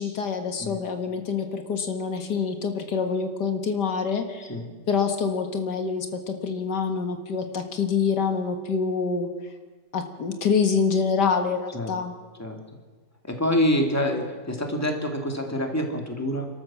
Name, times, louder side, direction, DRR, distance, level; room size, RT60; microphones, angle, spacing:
voice 1, 0.0-4.5 4.9-9.3 9.9-12.1, left 5 dB, 90° left, 6 dB, 2.2 m, -26 dB
voice 2, 13.2-16.5, left 1 dB, 10° left, 3 dB, 2.4 m, -26 dB
28.5 x 13.0 x 7.5 m, 1.3 s
omnidirectional pair, 1.8 m